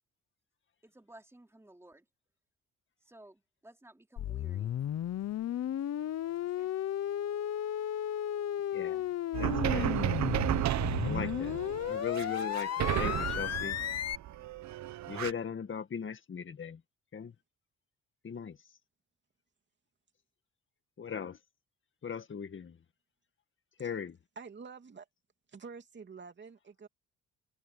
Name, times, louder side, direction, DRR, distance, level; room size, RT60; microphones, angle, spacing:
voice 1, 0.8-2.1 3.0-4.7 6.4-6.7, right 1 dB, 10° right, 4.0 m, -56 dB
sound 1, 4.2-14.2, left 11 dB, 55° left, 0.9 m, -34 dB
voice 2, 8.7-9.1 9.4-10.0 11.0-11.6 11.9-13.8 15.1-16.8 17.1-17.3 18.2-18.6 21.0-21.4 22.0-22.7 23.8-24.2, left 7 dB, 40° left, 2.0 m, -38 dB
sound 2, 9.3-15.3, right 13 dB, 65° right, 1.0 m, -33 dB
voice 3, 23.8-24.1 24.3-25.1 25.5-26.9, right 5 dB, 35° right, 2.9 m, -48 dB
cardioid pair, 90°, 30 cm